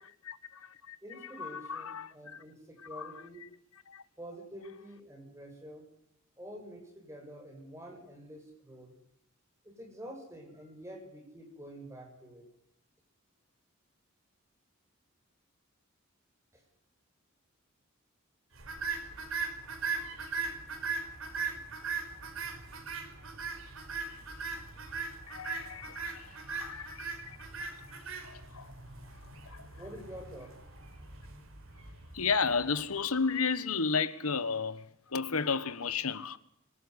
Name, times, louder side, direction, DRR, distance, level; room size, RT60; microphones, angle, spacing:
voice 1, 0.2-1.0 1.2-2.4 2.9-3.1 3.9-4.0 25.3-27.8 28.2-28.7 29.4-29.7 32.1-36.4, left 5 dB, 85° left, 1.5 m, -33 dB
voice 2, 1.0-3.5 4.2-5.9 6.4-9.0 9.6-12.4 16.5-16.6 24.8-24.9 29.8-30.6, equal, 15° right, 7.5 m, -48 dB
sound 1, 18.6-32.9, right 4 dB, 70° right, 5.2 m, -39 dB
25.0 x 13.5 x 9.7 m
head